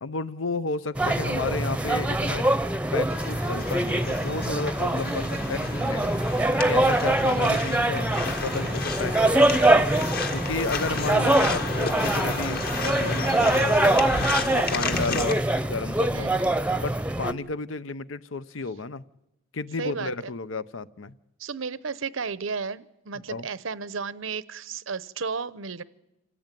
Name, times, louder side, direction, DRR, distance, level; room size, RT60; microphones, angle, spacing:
voice 1, 0.0-2.5 2.9-6.2 6.7-9.9 10.3-14.1 14.5-16.3 16.8-19.0 19.5-21.1 23.3-23.5, left 3 dB, 75° left, 15 dB, 0.8 m, -32 dB
sound 1, 0.9-17.3, right 1 dB, 5° right, 0.8 m, -24 dB
sound 2, 3.1-15.3, left 4 dB, 50° left, 1.9 m, -32 dB
voice 2, 14.7-15.2 16.1-16.4 19.8-20.1 21.4-25.8, right 5 dB, 80° right, 17 dB, 0.8 m, -33 dB
26.0 x 16.0 x 9.1 m, 0.98 s
head